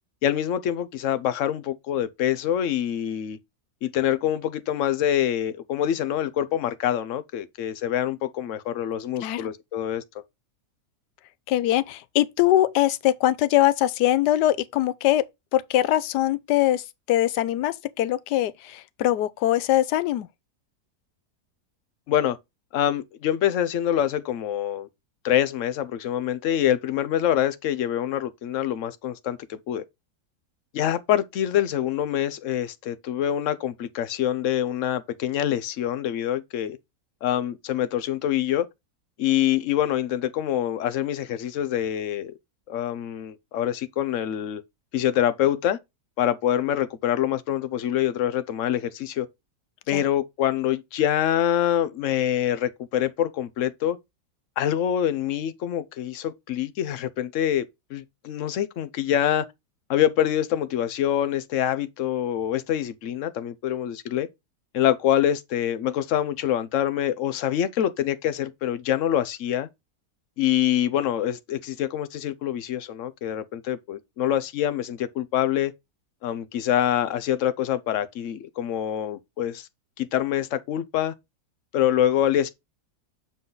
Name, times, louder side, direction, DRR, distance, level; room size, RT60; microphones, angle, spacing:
voice 1, 0.2-3.4 3.8-10.0 22.1-22.4 22.7-24.9 25.2-29.8 30.7-36.8 37.2-38.7 39.2-42.3 42.7-44.6 44.9-45.8 46.2-49.3 49.9-54.0 54.6-57.6 57.9-59.5 59.9-64.3 64.7-69.7 70.4-75.7 76.2-79.7 80.0-81.1 81.7-82.5, left 11 dB, 60° left, 0.9 m, -25 dB
voice 2, 11.5-15.2 15.5-20.3 49.9-50.0, left 14 dB, 85° left, 1.2 m, -22 dB
7.4 x 3.9 x 3.8 m
omnidirectional pair, 1.7 m